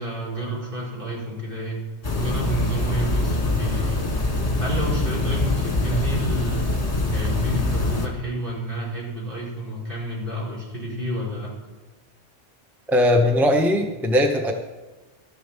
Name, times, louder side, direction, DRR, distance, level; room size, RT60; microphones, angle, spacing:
voice 1, 0.0-1.8 2.2-4.0 4.6-6.7 7.1-11.5, right 1 dB, 50° right, -5 dB, 4.7 m, -30 dB
sound 1, 2.0-8.1, left 2 dB, 35° left, 1.5 m, -24 dB
voice 2, 12.9-14.5, left 1 dB, ahead, 3 dB, 0.9 m, -19 dB
12.5 x 7.2 x 7.3 m, 1.2 s
omnidirectional pair, 1.1 m